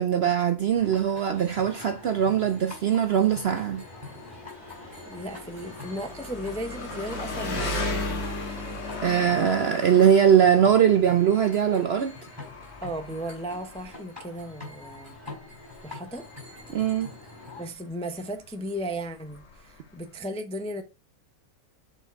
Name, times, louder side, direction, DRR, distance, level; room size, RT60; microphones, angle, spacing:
voice 1, 0.0-3.8 9.0-12.1 16.7-17.1, right 8 dB, 65° right, 0.6 m, -21 dB
Engine, 0.6-20.2, left 2 dB, 45° left, 1.6 m, -38 dB
sound 1, 0.7-17.7, left 3 dB, 15° right, 4.6 m, -45 dB
voice 2, 4.7-8.2 12.8-15.2 15.8-16.3 16.7-16.9 17.6-20.8, equal, 10° left, 0.4 m, -36 dB
7.1 x 4.5 x 4.4 m
omnidirectional pair, 1.6 m